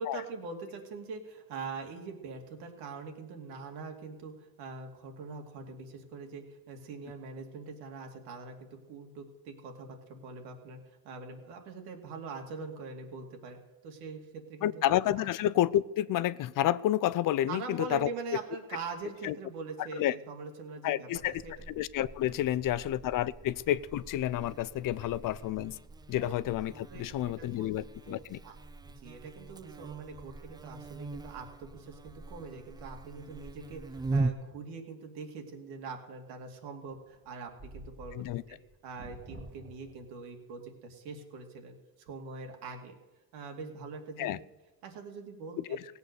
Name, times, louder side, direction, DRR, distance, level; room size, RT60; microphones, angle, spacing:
voice 1, 0.0-14.7 15.2-15.3 17.5-21.1 21.4-21.5 22.4-22.5 26.2-26.3 26.9-27.7 28.1-28.5 28.8-38.6 38.8-41.7 42.1-42.9 43.3-44.4 44.8-45.8, right 4 dB, 85° right, 3 dB, 2.5 m, -43 dB
voice 2, 14.6-18.1 19.2-19.3 20.0-20.2 20.8-21.4 21.7-25.8 26.1-28.4 38.1-38.4 44.2-44.4 45.8-45.9, left 13 dB, 55° left, 19 dB, 0.5 m, -30 dB
Buzz, 21.1-34.3, right 3 dB, 10° right, 0.4 m, -41 dB
sound 1, 36.9-40.3, right 2 dB, 30° right, 2.0 m, -50 dB
17.0 x 8.3 x 6.6 m, 1.1 s
cardioid pair, 115°, 39 cm